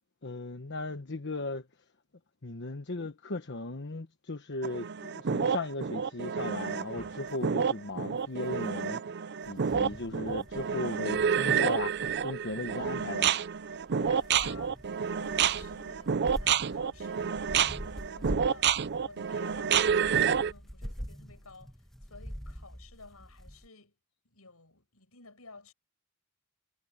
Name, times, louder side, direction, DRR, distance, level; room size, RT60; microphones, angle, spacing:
voice 1, 0.2-1.7 2.4-9.0 9.5-13.4, left 2 dB, 55° left, 1.2 m, -37 dB
sound 1, 4.6-20.5, right 7 dB, 50° right, 0.5 m, -29 dB
sound 2, 7.0-7.3 8.5-8.6 9.4-23.7, equal, ahead, 1.4 m, -45 dB
voice 2, 13.9-14.8 15.1-17.5 18.1-18.7 19.0-21.7 22.1-23.9 24.2-25.7, left 3 dB, 85° left, 7.7 m, -52 dB
head